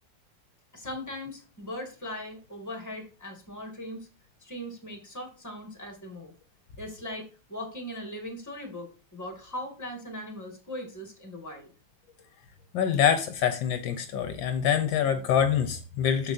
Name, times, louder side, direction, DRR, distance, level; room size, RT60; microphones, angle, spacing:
voice 1, 0.7-4.1 4.4-6.3 6.8-11.7, left 1 dB, 10° left, 2 dB, 2.0 m, -39 dB
voice 2, 12.7-16.3, left 8 dB, 75° left, 7 dB, 1.5 m, -25 dB
6.9 x 6.8 x 2.7 m, 0.37 s
omnidirectional pair, 2.1 m